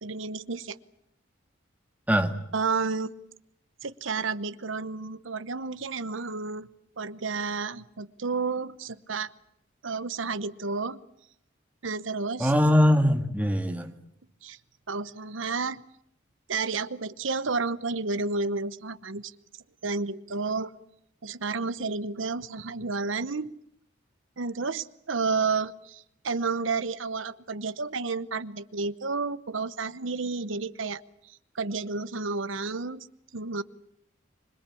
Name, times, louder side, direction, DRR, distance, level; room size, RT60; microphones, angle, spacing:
voice 1, 0.0-0.8 2.5-3.1 3.8-6.7 7.0-9.3 9.8-11.0 11.8-12.5 14.4-14.6 14.9-15.8 16.5-19.3 19.8-20.7 21.2-23.5 24.4-31.0 31.3-33.1 33.3-33.6, right 4 dB, 75° right, 15 dB, 1.0 m, -31 dB
voice 2, 12.4-13.9, equal, 10° right, 6 dB, 1.9 m, -22 dB
26.0 x 21.5 x 8.5 m, 0.76 s
head